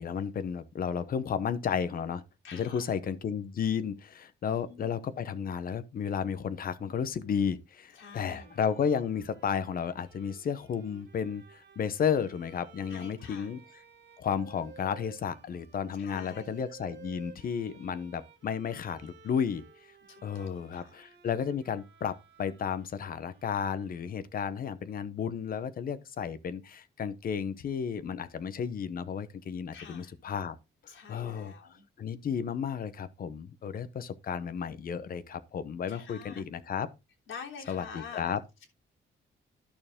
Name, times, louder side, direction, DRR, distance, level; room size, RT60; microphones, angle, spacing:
voice 1, 0.0-2.2 2.5-13.6 14.2-19.6 20.2-30.6 31.1-31.5 32.0-36.9 37.7-38.4, left 7 dB, 45° left, 0.9 m, -33 dB
voice 2, 2.4-2.9 4.4-4.9 7.9-8.6 12.9-13.5 16.0-16.6 20.1-20.9 29.7-30.1 30.9-31.8 35.9-36.4 37.3-38.3 38.6-38.7, left 6 dB, 85° left, 3.5 m, -47 dB
Bowed string instrument, 7.9-24.5, right 5 dB, 65° right, 2.0 m, -56 dB
11.5 x 6.7 x 3.6 m
wide cardioid pair, 170°, 20 cm